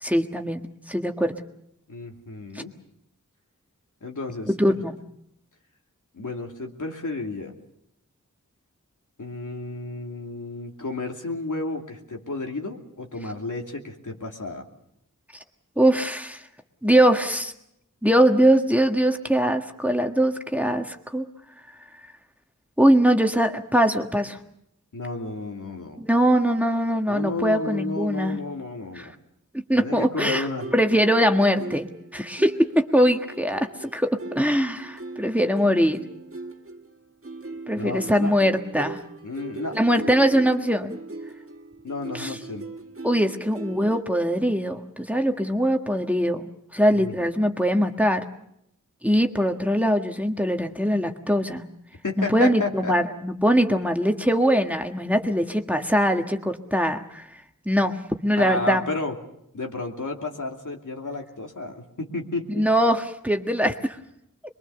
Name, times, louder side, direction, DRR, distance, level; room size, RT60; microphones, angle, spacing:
voice 1, 0.0-1.3 2.5-2.6 4.5-4.9 15.8-16.4 16.8-17.5 18.0-21.3 22.8-24.4 26.0-28.4 28.9-29.1 29.7-30.5 30.7-31.9 32.1-36.0 37.7-39.0 39.7-41.0 42.1-42.4 43.0-48.2 49.0-51.6 52.2-57.3 57.6-58.8 62.5-64.0, equal, 5° right, 4 dB, 1.6 m, -22 dB
voice 2, 1.9-2.7 4.0-4.8 6.1-7.5 9.2-14.6 24.9-26.0 27.1-29.1 29.7-30.7 37.7-38.3 39.2-39.8 41.8-42.7 46.9-47.1 52.0-53.0 58.4-59.2 59.5-62.6, left 2 dB, 75° left, 1 dB, 2.8 m, -32 dB
sound 1, 30.4-44.0, right 3 dB, 45° right, 1.6 m, -40 dB
23.5 x 22.5 x 7.0 m, 0.77 s
wide cardioid pair, 50°, 31 cm